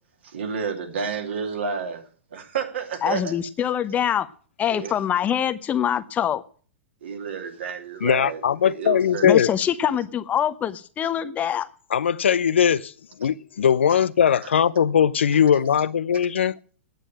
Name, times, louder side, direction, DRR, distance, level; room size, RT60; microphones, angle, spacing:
voice 1, 0.2-2.1 2.3-3.3 4.7-4.9 7.0-9.3 14.4-14.5, right 6 dB, 70° right, 2.6 m, -30 dB
voice 2, 3.0-4.3 4.6-6.4 9.2-11.7, left 9 dB, 25° left, 0.7 m, -24 dB
voice 3, 8.0-9.5 11.9-12.9 13.2-16.5, left 8 dB, 75° left, 0.6 m, -20 dB
9.2 x 8.2 x 8.7 m
hypercardioid pair, 110°, 6 cm